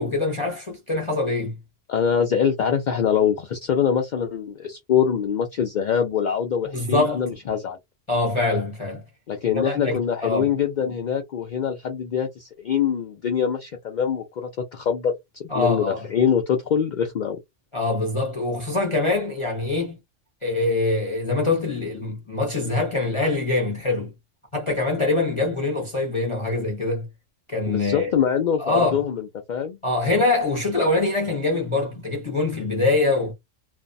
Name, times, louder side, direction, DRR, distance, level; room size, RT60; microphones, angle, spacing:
voice 1, 0.0-1.5 6.7-7.2 8.1-9.0 9.5-10.5 15.5-16.0 17.7-20.0 20.4-24.1 24.5-27.1 27.5-28.1 28.6-29.0 29.8-33.3, left 2 dB, 30° left, 0.6 m, -24 dB
voice 2, 1.9-7.8 9.3-17.4 27.7-29.2 29.5-29.8, left 8 dB, 70° left, 0.4 m, -24 dB
2.5 x 2.1 x 2.5 m
omnidirectional pair, 1.3 m